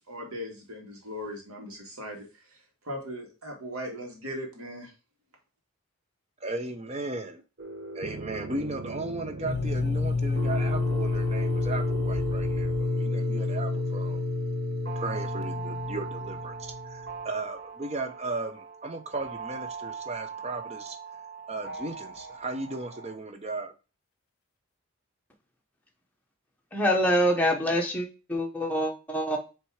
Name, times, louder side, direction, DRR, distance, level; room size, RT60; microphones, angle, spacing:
voice 1, 0.1-4.9, equal, 80° right, 2.0 m, -39 dB
voice 2, 6.4-7.4 7.9-14.2 14.9-21.0 21.5-23.7, right 2 dB, 30° right, 0.7 m, -36 dB
sound 1, 7.6-23.1, right 3 dB, 50° right, 1.0 m, -38 dB
sound 2, 9.4-17.2, left 3 dB, 45° left, 0.9 m, -29 dB
voice 3, 26.7-29.4, equal, 5° left, 1.0 m, -25 dB
6.0 x 3.4 x 4.8 m
head